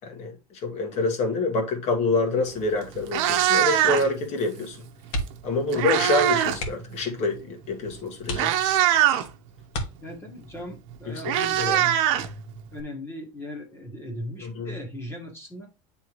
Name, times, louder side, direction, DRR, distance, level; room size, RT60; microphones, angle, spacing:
voice 1, 0.0-0.3 0.6-4.8 5.4-8.5 11.1-11.9 14.4-14.7, left 3 dB, 40° left, 1.7 m, -27 dB
Meow, 2.5-2.6 3.0-4.2 5.3-6.6 6.9-7.2 7.9-8.0 8.3-9.3 10.6-10.7 10.9-12.8, right 12 dB, 70° right, 0.9 m, -22 dB
sound 1, 5.1-5.6 5.9-6.1 6.5-7.0 7.6-7.7 8.2-9.0 9.7-10.5 12.0-12.3 12.7-12.8, equal, 75° left, 1.6 m, -33 dB
voice 2, 10.0-11.9 12.7-15.7, left 1 dB, 15° left, 1.5 m, -38 dB
9.3 x 3.5 x 3.1 m
cardioid pair, 155°, 17 cm